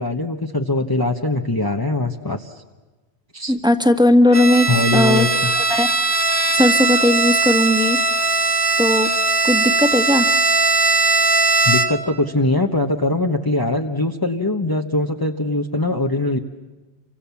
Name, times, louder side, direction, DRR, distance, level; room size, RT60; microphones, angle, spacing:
voice 1, 0.0-2.6 3.3-3.5 4.7-5.5 11.6-16.4, left 2 dB, 20° left, 3 dB, 1.2 m, -21 dB
voice 2, 3.5-5.3 5.6-5.9 6.5-8.0 8.8-9.1 9.4-10.3, left 1 dB, 5° right, 6 dB, 1.7 m, -17 dB
Bowed string instrument, 4.3-12.2, right 3 dB, 20° right, 1.1 m, -19 dB
29.0 x 25.0 x 7.2 m, 1.2 s
omnidirectional pair, 1.1 m